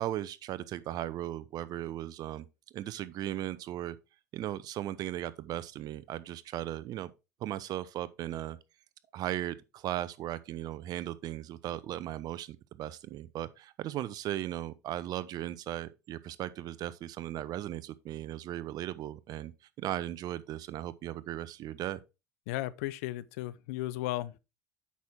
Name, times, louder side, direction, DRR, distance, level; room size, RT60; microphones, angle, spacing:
voice 1, 0.0-2.5 2.7-4.0 4.3-7.1 7.4-8.6 9.1-19.5 19.8-22.0, right 13 dB, 55° right, 0.7 m, -37 dB
voice 2, 22.5-24.4, left 16 dB, 75° left, 0.6 m, -35 dB
8.4 x 6.2 x 3.5 m
hypercardioid pair, 80°, 8 cm